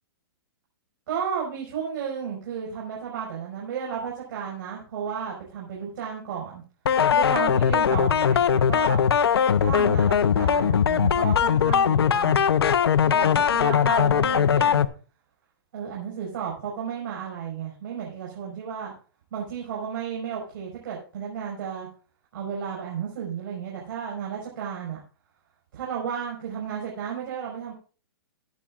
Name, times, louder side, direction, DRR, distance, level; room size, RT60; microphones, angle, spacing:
voice 1, 1.1-6.6 7.1-9.0 9.6-12.6 13.0-14.9 15.7-18.9 19.3-21.9 22.3-25.0 25.7-27.7, right 7 dB, 60° right, -2 dB, 5.2 m, -33 dB
sound 1, 6.9-14.9, left 8 dB, 85° left, 0.7 m, -20 dB
20.5 x 8.6 x 2.5 m, 0.38 s
hypercardioid pair, 140°, 13 cm